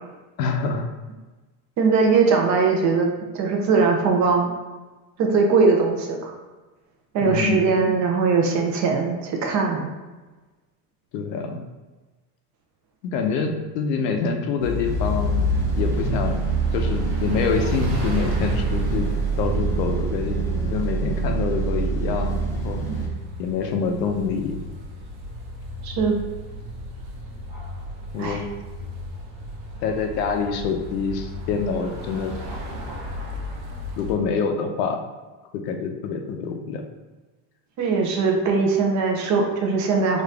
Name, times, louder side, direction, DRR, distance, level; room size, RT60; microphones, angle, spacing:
voice 1, 0.4-0.9 7.2-7.6 11.1-11.6 13.0-15.5 15.8-16.4 16.7-19.1 19.4-22.8 23.4-24.6 28.1-28.4 29.8-32.3 34.0-35.0 35.5-36.8, left 5 dB, 80° left, 5 dB, 0.8 m, -26 dB
voice 2, 1.8-4.5 5.2-6.3 7.1-9.9 22.8-23.1 25.8-26.2 28.2-28.4 37.8-40.2, right 4 dB, 40° right, 2 dB, 0.7 m, -21 dB
sound 1, 14.6-34.1, left 2 dB, 65° right, 1.0 m, -32 dB
sound 2, 14.8-23.1, right 5 dB, 5° left, 0.6 m, -26 dB
3.9 x 2.6 x 3.3 m, 1.2 s
supercardioid pair, 135°, 47 cm